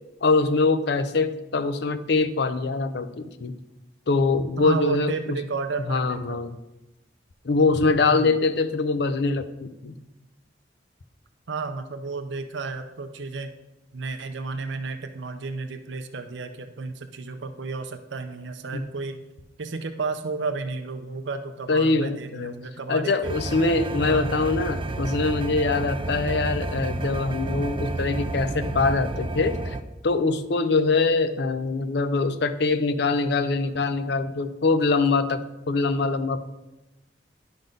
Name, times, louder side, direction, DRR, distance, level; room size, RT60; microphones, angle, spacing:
voice 1, 0.2-3.6 4.1-5.4 5.9-6.6 7.4-10.0 18.7-18.8 21.7-22.5 22.9-29.8 30.0-35.4 35.7-36.4, left 3 dB, 65° left, 11 dB, 0.5 m, -23 dB
voice 2, 4.6-6.4 8.1-8.3 11.5-13.5 13.9-19.2 19.6-23.3 23.9-24.3, right 4 dB, 80° right, 8 dB, 0.6 m, -32 dB
sound 1, 23.2-29.8, right 2 dB, 25° right, 0.4 m, -30 dB
10.5 x 3.9 x 5.2 m, 1.0 s
head